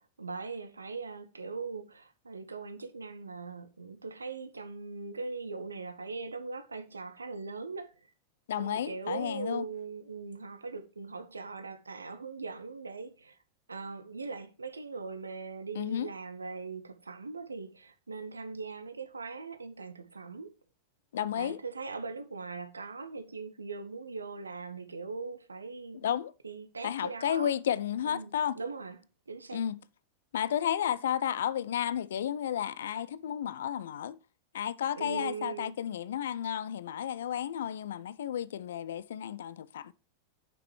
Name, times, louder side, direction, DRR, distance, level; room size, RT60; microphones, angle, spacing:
voice 1, 0.2-7.9 8.6-13.3 13.7-20.5 21.3-26.1 26.4-27.5 28.1-28.3 28.6-29.0 29.3-29.6 35.0-35.7, right 4 dB, 75° right, 0.7 m, -40 dB
voice 2, 8.5-9.7 15.7-16.1 21.1-21.6 25.9-26.3 26.8-28.6 29.5-29.8 30.3-34.2 34.5-39.9, left 9 dB, 60° left, 0.4 m, -32 dB
10.0 x 5.8 x 3.2 m
figure-of-eight pair, 90°, 0 cm